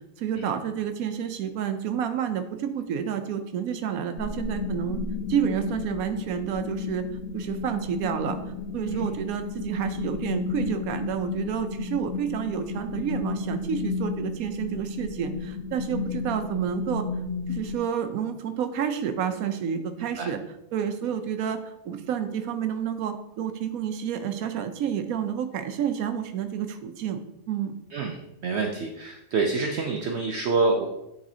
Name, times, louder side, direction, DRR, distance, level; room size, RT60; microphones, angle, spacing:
voice 1, 0.2-5.0 5.3-7.0 7.3-8.4 8.7-17.0 17.5-20.4 20.7-27.2 27.5-27.7, right 8 dB, 85° right, 8 dB, 1.1 m, -29 dB
sound 1, 4.1-17.8, left 5 dB, 70° left, 0.9 m, -33 dB
voice 2, 20.0-20.3 27.9-28.2 28.4-30.9, right 3 dB, 65° right, 2 dB, 0.7 m, -27 dB
8.6 x 4.1 x 2.7 m, 0.90 s
omnidirectional pair, 1.5 m